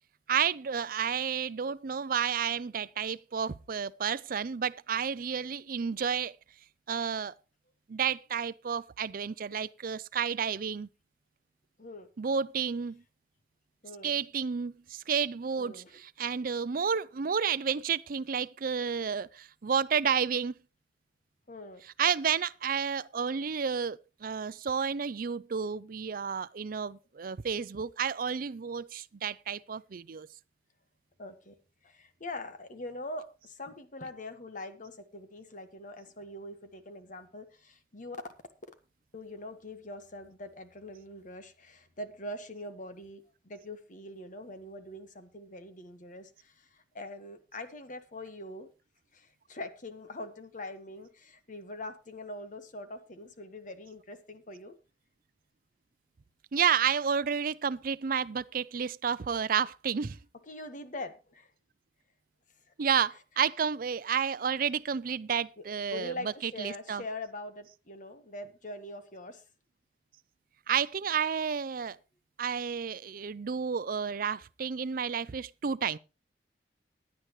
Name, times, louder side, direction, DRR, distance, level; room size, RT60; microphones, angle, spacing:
voice 1, 0.3-6.3 6.9-7.3 7.9-10.9 12.2-13.0 14.0-20.6 22.0-30.3 56.5-60.2 62.8-67.0 70.7-72.0 72.4-76.0, right 7 dB, 55° right, 0.5 m, -31 dB
voice 2, 13.8-14.2 15.6-16.0 21.5-21.8 31.2-31.5 31.8-38.2 39.1-48.7 49.1-54.8 60.5-61.5 65.6-65.7 65.9-69.4, left 1 dB, 50° left, 1.5 m, -43 dB
16.5 x 10.5 x 3.1 m
head